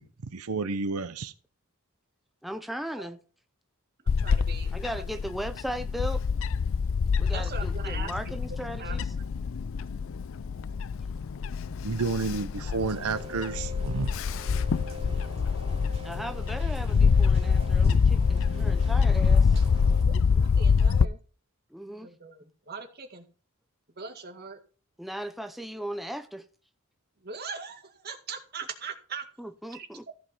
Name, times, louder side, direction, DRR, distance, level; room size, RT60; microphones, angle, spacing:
voice 1, 0.3-1.3 11.8-14.1, right 4 dB, 85° right, 0.8 m, -30 dB
voice 2, 2.4-3.2 4.7-6.2 7.2-9.1 16.0-19.6 21.7-22.1 25.0-26.5 29.4-30.1, equal, ahead, 0.5 m, -37 dB
Bird / Wind, 4.1-21.0, left 5 dB, 65° left, 0.4 m, -25 dB
voice 3, 4.1-4.8 7.3-8.1 8.8-9.0 20.1-21.2 21.8-23.3 24.0-24.6 27.2-29.2 29.7-30.1, right 5 dB, 45° right, 2.0 m, -40 dB
Rain, 12.8-20.0, left 1 dB, 30° right, 2.6 m, -45 dB
15.0 x 5.3 x 5.5 m
head